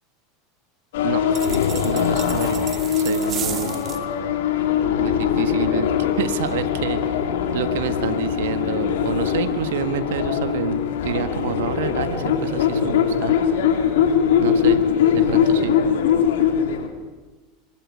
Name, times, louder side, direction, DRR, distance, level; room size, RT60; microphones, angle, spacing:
sound 1, 0.9-16.9, left 8 dB, 75° left, 3.0 m, -21 dB
sound 2, 1.3-4.0, right 9 dB, 40° right, 2.0 m, -33 dB
voice 1, 1.8-2.7 3.0-3.8 5.0-7.2 7.5-13.4 14.4-14.8 15.1-15.7, right 9 dB, 80° right, 11 dB, 1.6 m, -28 dB
24.0 x 13.5 x 9.7 m, 1.3 s
hypercardioid pair, 95°, 0 cm